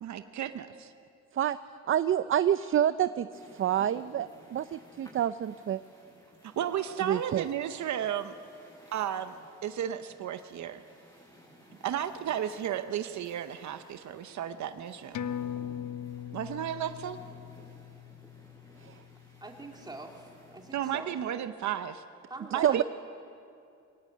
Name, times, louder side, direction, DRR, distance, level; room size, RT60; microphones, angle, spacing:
voice 1, 0.0-0.9 6.4-8.3 8.9-10.8 11.8-15.2 16.3-17.2 20.7-22.0 22.5-22.8, right 10 dB, 70° right, 9 dB, 0.9 m, -33 dB
voice 2, 1.9-5.8 7.0-7.5 18.8-19.0 22.6-22.8, right 10 dB, 45° right, 14 dB, 0.5 m, -28 dB
sound 1, 3.3-20.8, equal, 10° left, 7.4 m, -57 dB
sound 2, 15.1-20.1 20.4-20.5, left 9 dB, 70° left, 0.9 m, -40 dB
voice 3, 19.4-21.1 22.3-22.8, right 2 dB, 15° right, 1 dB, 3.2 m, -44 dB
22.0 x 18.0 x 8.6 m, 2.5 s
cardioid pair, 90°, 30 cm